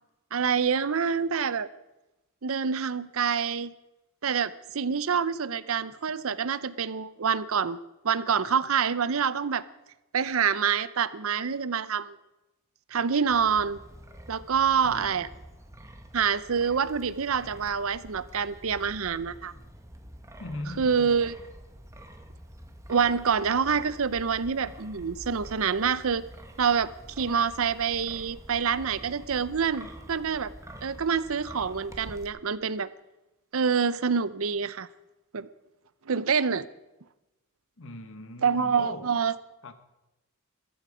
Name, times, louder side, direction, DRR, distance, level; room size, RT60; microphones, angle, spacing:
voice 1, 0.3-1.7 2.4-3.7 4.2-7.8 8.0-9.6 10.1-12.2 12.9-13.8 14.3-15.3 16.1-19.5 20.8-21.3 22.9-26.2 26.6-26.9 27.2-30.5 30.8-32.9 33.5-34.9 35.3-35.5 36.1-36.7 38.4-39.3, right 6 dB, 65° right, 0.6 m, -26 dB
Wind, 13.3-32.3, right 1 dB, 15° right, 1.1 m, -47 dB
voice 2, 14.8-15.2 20.4-21.1 37.8-39.1 39.6-39.7, left 1 dB, 60° left, 1.3 m, -39 dB
14.5 x 13.5 x 5.0 m
head